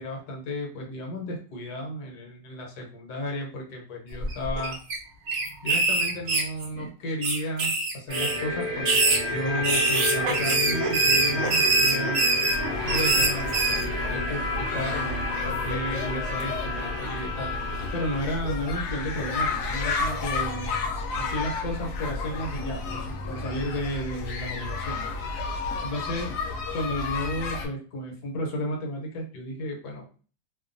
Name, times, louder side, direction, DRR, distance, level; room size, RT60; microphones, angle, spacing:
voice 1, 0.0-4.8 5.6-12.2 12.8-17.5 17.9-20.8 21.2-25.2 25.8-26.3 26.7-30.0, equal, 65° left, 0 dB, 1.2 m, -33 dB
sound 1, 4.2-4.9 5.3-6.8 7.2-8.4 8.8-13.8, right 3 dB, 65° right, 0.7 m, -24 dB
sound 2, 8.1-18.2, left 2 dB, 30° right, 1.3 m, -31 dB
sound 3, 12.5-27.7, left 3 dB, 80° left, 0.7 m, -32 dB
2.9 x 2.3 x 2.5 m, 0.39 s
omnidirectional pair, 2.0 m